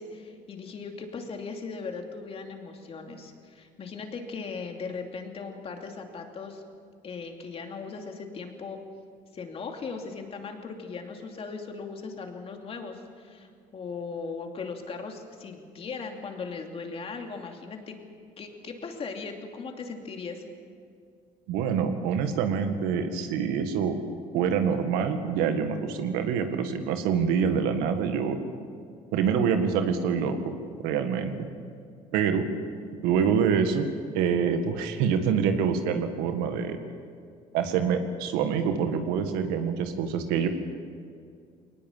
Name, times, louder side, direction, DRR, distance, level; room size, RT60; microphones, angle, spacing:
voice 1, 0.0-6.6 7.0-8.8 9.3-18.0 18.4-20.4, left 4 dB, 40° left, 3 dB, 2.8 m, -38 dB
voice 2, 21.5-24.0 24.3-28.4 29.1-30.5 30.8-31.5 32.1-32.5 33.0-33.9 34.1-36.8 37.5-40.5, right 7 dB, 90° right, 7 dB, 1.9 m, -26 dB
21.0 x 19.0 x 7.4 m, 2.2 s
cardioid pair, 105°, 15 cm